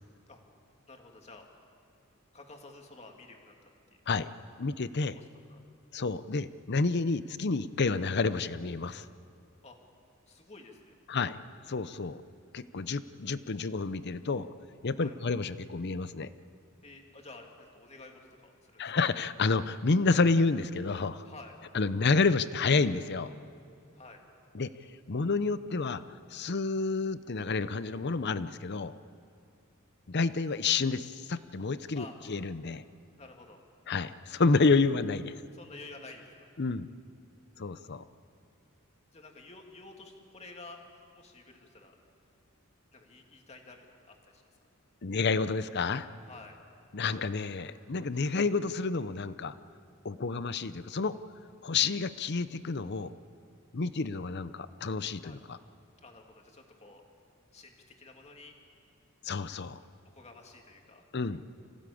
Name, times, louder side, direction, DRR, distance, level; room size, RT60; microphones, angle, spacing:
voice 1, 0.9-1.5 2.3-3.5 5.2-5.6 9.6-9.8 10.3-11.2 15.0-15.1 16.8-18.9 21.2-21.6 23.9-24.2 32.0-32.2 33.2-33.6 35.5-36.5 39.1-40.8 41.1-42.0 42.9-44.4 46.3-46.6 55.2-55.4 56.0-57.0 57.5-58.5 60.0-61.0 61.3-61.4, left 3 dB, 30° left, 2 dB, 2.4 m, -51 dB
voice 2, 4.6-5.2 5.9-9.0 11.1-11.4 11.7-12.2 12.5-14.5 14.8-16.3 18.8-21.3 21.7-23.3 24.5-24.7 25.1-26.0 26.3-28.9 30.1-32.8 33.9-35.3 36.6-36.9 37.6-38.0 45.0-46.1 46.9-49.6 50.0-51.2 51.6-53.1 53.7-55.6 59.2-59.8 61.1-61.4, left 4 dB, 55° left, 14 dB, 0.7 m, -29 dB
26.5 x 16.5 x 8.5 m, 2.4 s
head